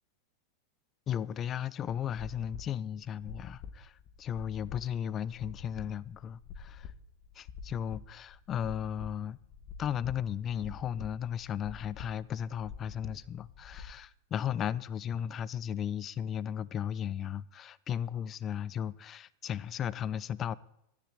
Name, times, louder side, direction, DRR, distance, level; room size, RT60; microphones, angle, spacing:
voice 1, 1.1-6.9 7.3-9.4 9.8-20.6, left 9 dB, 35° left, 0.7 m, -35 dB
sound 1, 2.1-13.9, left 6 dB, 50° left, 1.6 m, -47 dB
13.0 x 10.5 x 8.7 m
hypercardioid pair, 105°, 0 cm